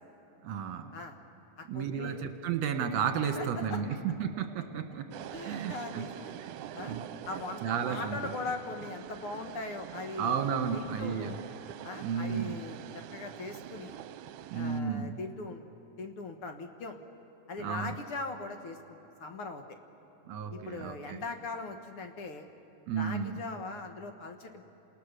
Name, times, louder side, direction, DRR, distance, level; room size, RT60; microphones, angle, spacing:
voice 1, 0.4-0.9 1.7-3.9 4.2-5.1 5.4-6.1 6.4-7.0 7.6-8.3 10.2-11.3 12.0-12.6 14.5-15.2 17.6-18.0 20.3-21.2 22.9-23.4, right 7 dB, 60° right, 6 dB, 2.6 m, -33 dB
voice 2, 1.6-2.2 3.3-3.8 5.3-6.4 6.7-7.0 7.2-10.4 10.7-11.4 11.8-14.0 14.5-15.7 16.0-17.0 17.5-19.6 20.5-22.5 22.9-24.6, left 3 dB, 55° left, 5 dB, 1.7 m, -40 dB
sound 1, 5.1-14.8, right 11 dB, 80° right, 2.1 m, -44 dB
29.5 x 27.0 x 6.8 m, 3.0 s
omnidirectional pair, 3.6 m